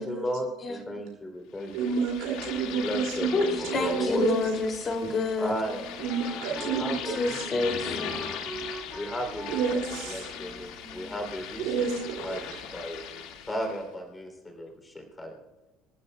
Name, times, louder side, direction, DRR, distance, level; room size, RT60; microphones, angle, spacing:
voice 1, 0.0-2.0 2.8-4.2 5.4-6.0 6.6-8.0 8.9-9.6 10.1-11.9 12.2-12.4 12.7-15.4, equal, 15° left, 3 dB, 2.9 m, -35 dB
sound 1, 1.6-13.8, left 8 dB, 70° left, 1.8 m, -39 dB
voice 2, 1.7-4.4 6.0-7.4 9.5-10.3 11.6-12.4, right 6 dB, 75° right, 0 dB, 2.3 m, -30 dB
voice 3, 3.3-5.5 7.0-8.2, left 3 dB, 30° left, 4 dB, 2.4 m, -28 dB
Wind instrument woodwind instrument, 5.6-11.9, right 2 dB, 5° right, 2.0 m, -43 dB
27.5 x 10.5 x 2.2 m, 1.1 s
cardioid pair, 135°, 0 cm